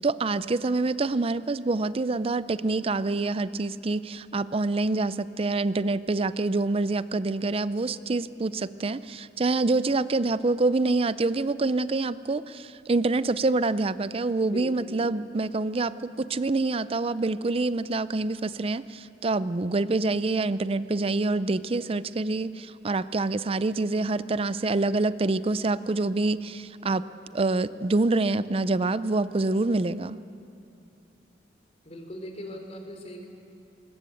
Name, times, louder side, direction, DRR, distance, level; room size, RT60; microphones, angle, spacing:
voice 1, 0.0-27.0 27.3-30.2, right 3 dB, 35° right, 15 dB, 0.5 m, -26 dB
voice 2, 14.4-15.0 31.8-33.3, equal, 40° left, 3 dB, 3.5 m, -39 dB
21.5 x 20.5 x 8.5 m, 2.6 s
head